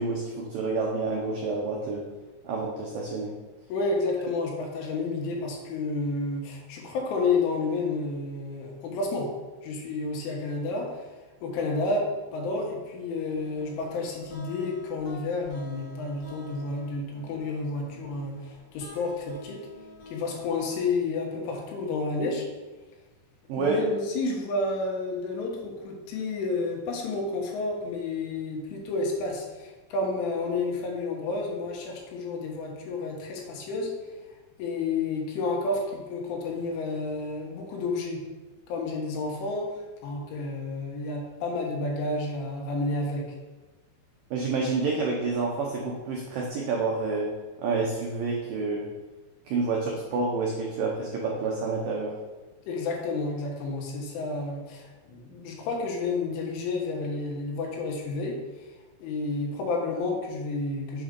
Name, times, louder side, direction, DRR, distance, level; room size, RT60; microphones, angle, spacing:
voice 1, 0.0-2.0 2.4-3.3 23.5-23.8 44.3-47.3 47.6-48.9 49.5-52.1, right 4 dB, 85° right, -2 dB, 1.9 m, -28 dB
voice 2, 3.7-9.3 9.6-11.1 11.4-12.1 12.3-19.6 20.1-22.4 23.6-33.9 34.6-38.2 38.7-43.2 52.6-58.7 59.0-61.0, left 3 dB, 80° left, 0 dB, 3.9 m, -30 dB
sound 1, 13.3-20.9, left 1 dB, 60° left, 1.6 m, -48 dB
7.7 x 6.4 x 5.3 m, 1.2 s
omnidirectional pair, 5.5 m